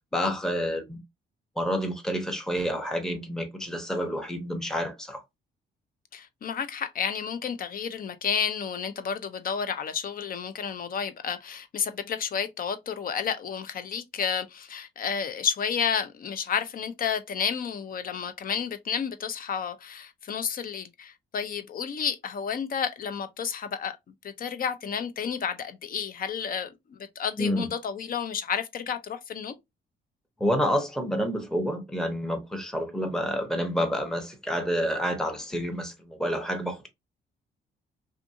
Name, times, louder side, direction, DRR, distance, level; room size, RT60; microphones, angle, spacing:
voice 1, 0.1-1.0 1.6-5.2 27.4-27.7 30.4-36.9, equal, 5° left, 0.7 m, -29 dB
voice 2, 6.1-24.0 24.2-29.5, left 7 dB, 45° left, 0.5 m, -31 dB
2.6 x 2.6 x 2.6 m
cardioid pair, 90°, 20 cm